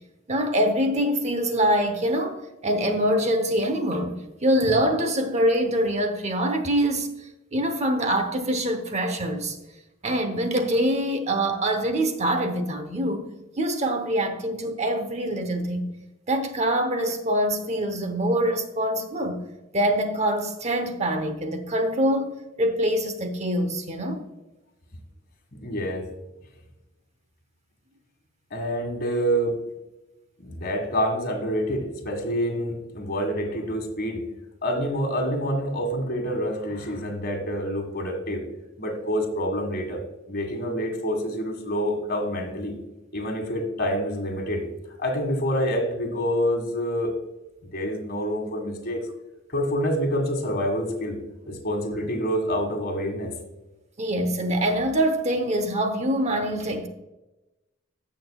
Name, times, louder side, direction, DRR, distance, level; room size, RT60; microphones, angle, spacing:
voice 1, 0.3-7.1 7.5-9.6 10.0-15.9 16.3-19.4 19.7-24.2 54.0-56.9, right 1 dB, 35° right, 0.9 m, -24 dB
voice 2, 25.6-26.1 28.5-29.6 30.4-34.2 34.6-38.4 38.8-40.0 40.3-42.7 43.1-44.6 45.0-47.2 47.7-49.0 49.5-51.2 51.5-53.3, equal, 50° left, 1.8 m, -27 dB
16.0 x 6.1 x 2.3 m
head